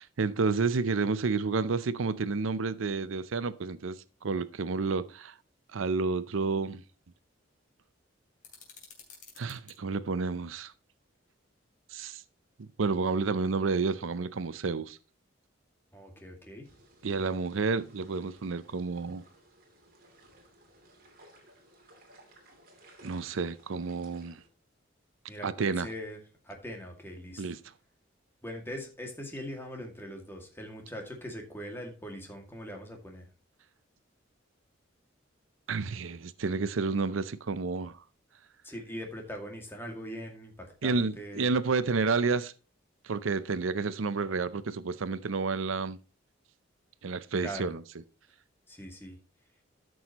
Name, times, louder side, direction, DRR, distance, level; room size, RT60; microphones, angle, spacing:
voice 1, 0.0-5.3 5.7-6.8 9.4-10.7 11.9-12.2 12.6-15.0 17.0-19.2 23.0-24.4 25.4-25.9 27.4-27.6 35.7-38.0 40.8-42.5 43.0-46.0 47.0-47.8, right 4 dB, 80° right, 0.6 m, -30 dB
sound 1, 8.4-9.8, left 5 dB, 40° left, 3.2 m, -52 dB
voice 2, 15.9-16.7 25.3-26.2 26.4-27.4 28.4-33.3 38.6-41.5 47.4-47.8 48.7-49.2, equal, 10° left, 2.2 m, -41 dB
sound 2, 16.6-24.5, right 1 dB, 45° right, 2.8 m, -59 dB
13.5 x 6.3 x 3.0 m
head